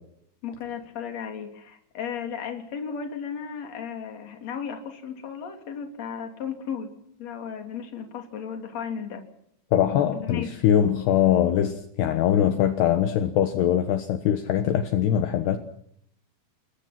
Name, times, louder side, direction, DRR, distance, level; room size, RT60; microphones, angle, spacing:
voice 1, 0.4-6.9 7.2-9.2 10.1-10.5, left 7 dB, 40° left, 3.8 m, -35 dB
voice 2, 9.7-15.6, left 10 dB, 70° left, 3.2 m, -22 dB
29.0 x 21.5 x 6.0 m
omnidirectional pair, 5.3 m